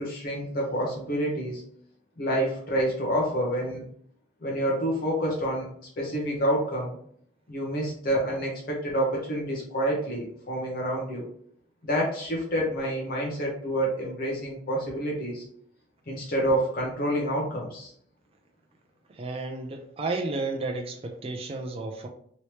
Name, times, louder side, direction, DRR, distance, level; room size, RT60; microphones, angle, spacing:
voice 1, 0.0-1.6 2.2-3.8 4.4-5.7 6.0-7.0 7.5-11.3 11.8-15.4 16.1-17.9, equal, 50° left, -2 dB, 0.8 m, -28 dB
voice 2, 19.1-22.1, right 3 dB, 30° right, 1 dB, 0.4 m, -32 dB
3.0 x 2.8 x 3.1 m, 0.63 s
head